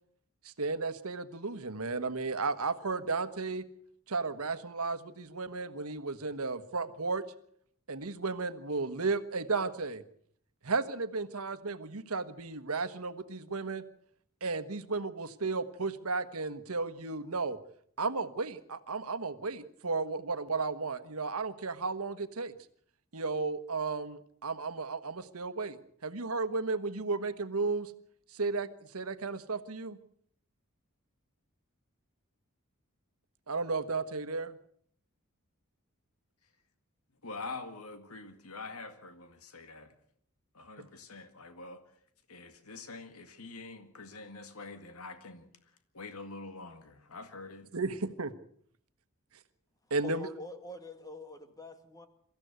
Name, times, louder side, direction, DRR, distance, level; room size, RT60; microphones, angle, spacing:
voice 1, 0.4-3.7 4.1-7.3 7.9-10.0 10.6-13.9 14.4-17.6 18.0-22.5 23.1-27.9 28.3-30.0 33.5-34.6 40.8-40.9 47.7-48.3 49.9-50.3, right 4 dB, 80° right, 12 dB, 1.4 m, -34 dB
voice 2, 37.2-39.9 40.5-41.8 42.3-47.7, left 3 dB, 85° left, 8 dB, 2.0 m, -45 dB
voice 3, 50.0-52.1, left 3 dB, 15° left, 8 dB, 2.1 m, -44 dB
23.5 x 14.5 x 8.1 m, 0.66 s
head